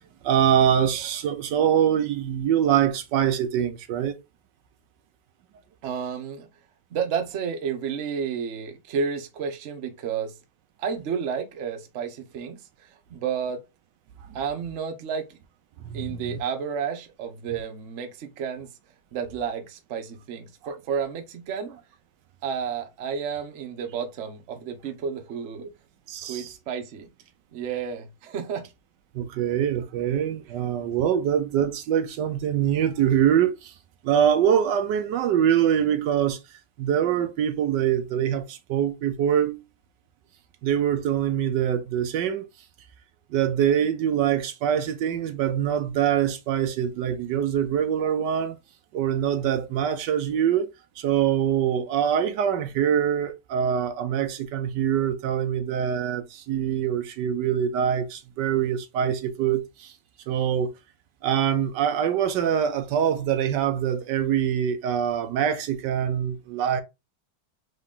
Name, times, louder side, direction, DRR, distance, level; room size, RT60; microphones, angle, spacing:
voice 1, 0.2-4.2 15.8-16.4 26.1-26.5 29.1-33.7 34.0-36.4 36.8-39.6 40.6-42.4 43.3-48.6 48.9-50.7 51.0-59.9 60.3-60.7 61.2-66.8, right 9 dB, 80° right, 1.2 m, -24 dB
voice 2, 5.8-6.5 6.9-10.4 10.8-13.6 14.3-15.4 15.9-18.7 19.1-21.8 22.4-25.7 26.2-27.1 27.5-28.7, right 7 dB, 50° right, 0.9 m, -31 dB
3.9 x 3.2 x 3.6 m
omnidirectional pair, 1.9 m